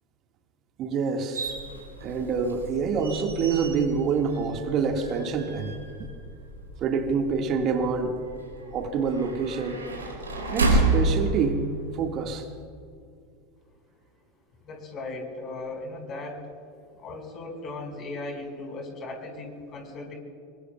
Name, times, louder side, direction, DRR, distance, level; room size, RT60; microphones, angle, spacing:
voice 1, 0.8-1.5 2.0-6.1 6.8-8.1 8.7-9.8 10.5-11.7 11.9-12.5, right 5 dB, 40° right, 4 dB, 1.7 m, -27 dB
sound 1, 1.3-12.2, right 2 dB, 85° right, 3.7 m, -31 dB
voice 2, 14.6-16.4 17.0-20.1, left 2 dB, 40° left, 2 dB, 5.0 m, -37 dB
26.0 x 23.5 x 2.3 m, 2.4 s
figure-of-eight pair, 80°, 0 cm